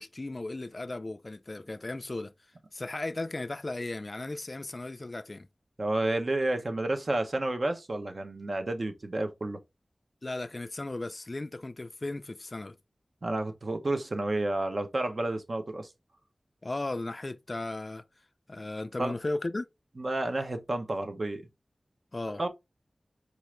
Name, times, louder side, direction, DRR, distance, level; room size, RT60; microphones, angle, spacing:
voice 1, 0.0-2.3 2.7-5.5 10.2-12.8 16.6-18.0 18.5-19.7 22.1-22.4, left 2 dB, 40° left, 0.3 m, -36 dB
voice 2, 5.8-9.6 13.2-15.9 19.0-19.1 20.0-21.4 22.4-22.5, right 2 dB, 55° right, 0.7 m, -30 dB
4.6 x 2.5 x 3.0 m
wide cardioid pair, 75°, 0 cm